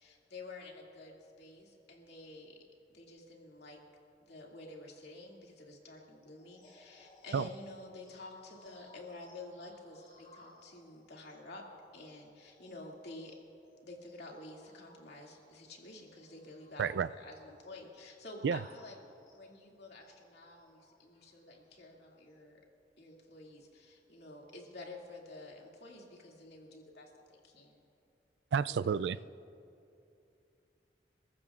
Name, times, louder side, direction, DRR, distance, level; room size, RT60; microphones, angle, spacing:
voice 1, 0.0-2.6 2.9-3.8 4.2-13.4 13.8-19.0 19.3-22.6 23.0-27.8 28.7-29.2, left 2 dB, 70° left, -1 dB, 2.3 m, -50 dB
sound 1, 6.3-19.4 20.0-22.4, left 2 dB, 45° left, 3.1 m, -64 dB
voice 2, 16.8-17.1 18.4-18.6 28.5-29.2, right 6 dB, 80° right, 15 dB, 0.3 m, -30 dB
29.0 x 14.5 x 2.4 m, 2.7 s
head